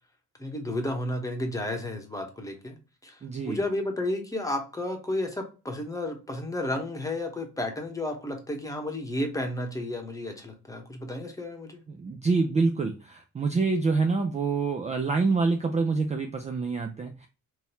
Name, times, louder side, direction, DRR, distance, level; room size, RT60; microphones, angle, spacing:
voice 1, 0.4-2.7 3.0-3.2 3.4-11.8, left 1 dB, 10° left, 1.1 m, -32 dB
voice 2, 3.2-3.6 11.9-17.3, right 4 dB, 25° right, 0.4 m, -26 dB
3.7 x 2.8 x 2.8 m
cardioid pair, 90°, 30 cm